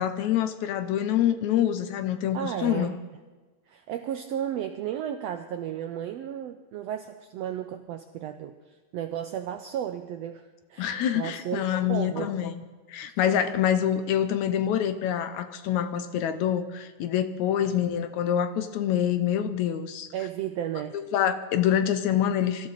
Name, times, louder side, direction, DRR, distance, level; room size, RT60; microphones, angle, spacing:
voice 1, 0.0-3.0 10.8-12.6 12.9-20.1 20.9-22.7, left 10 dB, 75° left, 10 dB, 1.9 m, -26 dB
voice 2, 2.3-3.0 3.7-12.3 17.6-17.7 20.1-21.0, right 10 dB, 85° right, 7 dB, 1.4 m, -34 dB
24.0 x 14.0 x 4.1 m, 1.3 s
omnidirectional pair, 3.7 m